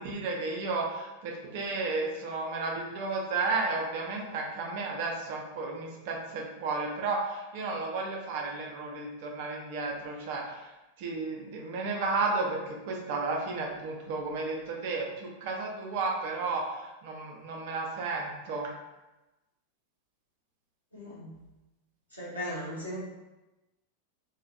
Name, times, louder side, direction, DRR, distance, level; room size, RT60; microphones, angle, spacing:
voice 1, 0.0-10.7 11.0-18.7, right 3 dB, 50° right, -1 dB, 0.5 m, -33 dB
voice 2, 20.9-21.3 22.1-23.0, equal, 90° left, -10 dB, 1.1 m, -37 dB
2.4 x 2.1 x 2.5 m, 1.0 s
figure-of-eight pair, 90°, 0 cm